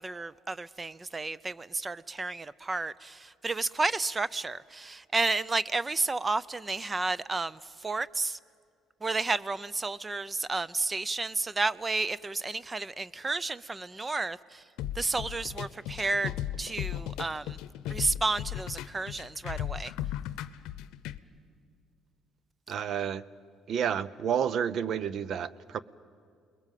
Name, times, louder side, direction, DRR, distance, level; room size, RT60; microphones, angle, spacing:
voice 1, 0.0-8.4 9.0-14.6 15.0-16.3 16.6-17.6 17.9-19.9, right 3 dB, 20° right, 20 dB, 0.5 m, -31 dB
sound 1, 14.8-21.2, left 12 dB, 80° left, 0.7 m, -36 dB
voice 2, 22.7-23.2 23.7-25.8, right 8 dB, 55° right, 19 dB, 0.7 m, -30 dB
29.0 x 21.0 x 7.6 m, 2.2 s
cardioid pair, 100°, 0 cm